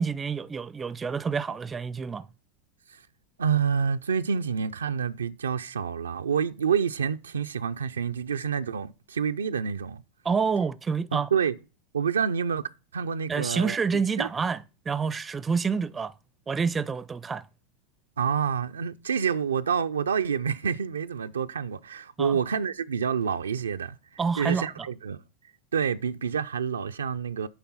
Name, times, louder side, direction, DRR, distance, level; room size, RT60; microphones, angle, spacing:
voice 1, 0.0-2.3 10.2-11.3 13.3-16.1 16.5-17.4 22.2-22.4 24.2-24.9, right 5 dB, 20° right, 0.4 m, -28 dB
voice 2, 3.4-10.0 11.1-11.5 11.9-14.3 18.2-24.0 24.4-25.2 25.7-27.5, right 7 dB, 90° right, 0.4 m, -28 dB
8.9 x 3.5 x 5.5 m
hypercardioid pair, 100°, 0 cm